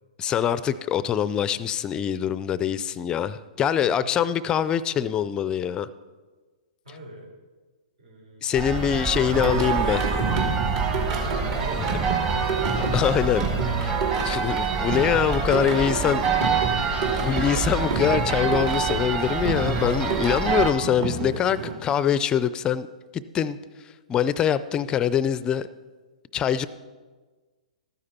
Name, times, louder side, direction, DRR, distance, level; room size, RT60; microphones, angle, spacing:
voice 1, 0.2-5.9 8.4-10.1 12.9-13.4 13.8-14.0 14.2-16.2 17.2-22.9 23.1-23.6 24.1-25.7 26.3-26.7, left 9 dB, 20° left, 16 dB, 0.4 m, -24 dB
voice 2, 3.8-4.2 6.8-7.3 8.0-9.0 11.1-13.1 15.0-17.4, equal, 75° right, -1 dB, 4.4 m, -40 dB
sound 1, 8.5-20.7, right 5 dB, 25° right, 1.4 m, -26 dB
Singing, 9.3-21.7, right 4 dB, 50° right, 2.4 m, -30 dB
13.0 x 9.6 x 4.3 m, 1.3 s
hypercardioid pair, 125°, 4 cm